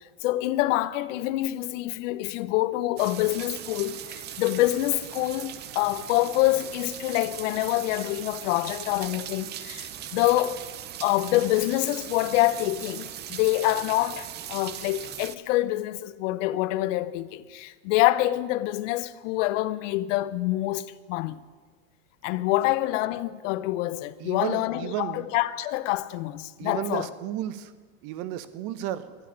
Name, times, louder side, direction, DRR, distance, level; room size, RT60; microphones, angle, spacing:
voice 1, 0.2-10.6 11.0-21.4 22.2-27.1, left 16 dB, 60° left, 0.9 m, -26 dB
sound 1, 3.0-15.4, right 10 dB, 25° right, 0.6 m, -39 dB
voice 2, 24.2-25.3 26.6-27.7 28.0-29.2, right 12 dB, 50° right, 1.2 m, -33 dB
12.5 x 10.5 x 10.0 m
supercardioid pair, 135°, 42 cm